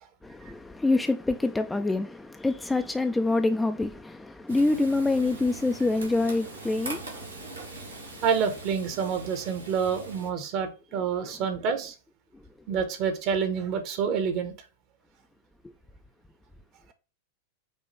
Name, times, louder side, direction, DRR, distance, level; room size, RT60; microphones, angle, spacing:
voice 1, 0.2-8.2, left 2 dB, 10° left, 0.3 m, -27 dB
Frying (food), 4.5-10.3, right 2 dB, 80° right, 1.5 m, -41 dB
voice 2, 8.2-11.9 12.7-14.5, right 6 dB, 40° right, 0.8 m, -28 dB
5.3 x 2.4 x 3.2 m
figure-of-eight pair, 90°, 0 cm